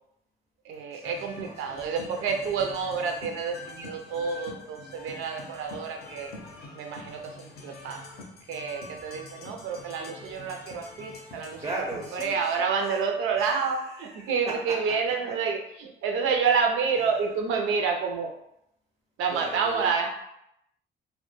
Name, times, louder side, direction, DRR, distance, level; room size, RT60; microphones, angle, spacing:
voice 1, 0.6-6.3 6.7-8.1 8.5-11.6 12.1-18.3 19.2-20.1, right 5 dB, 90° right, 3 dB, 0.4 m, -29 dB
sound 1, 1.0-12.2, left 2 dB, 55° left, 0.5 m, -45 dB
voice 2, 1.4-2.2 11.6-12.4 13.4-13.5 13.9-14.8 19.3-19.9, right 2 dB, 15° right, -2 dB, 0.4 m, -37 dB
2.1 x 2.1 x 3.0 m, 0.78 s
cardioid pair, 90°, 20 cm